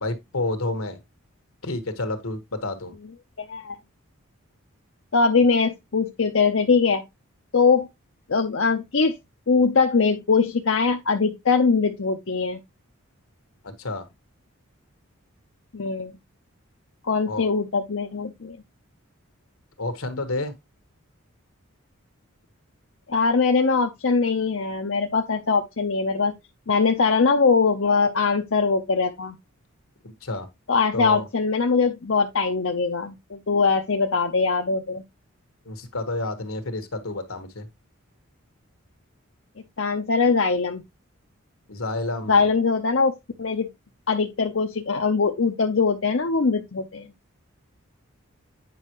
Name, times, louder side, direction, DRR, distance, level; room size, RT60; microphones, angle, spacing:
voice 1, 0.0-1.0 1.6-2.9 13.6-14.0 17.3-17.5 19.8-20.5 30.0-30.5 30.9-31.3 35.6-37.7 41.7-42.5, left 2 dB, 80° left, 1.5 m, -30 dB
voice 2, 3.4-3.8 5.1-7.0 7.5-7.9 8.3-9.2 9.5-12.6 15.7-16.1 17.0-18.6 23.1-26.3 26.7-29.4 30.7-35.0 39.8-40.8 42.3-43.7 44.1-47.1, left 4 dB, 60° left, 0.7 m, -22 dB
9.4 x 5.5 x 3.0 m
head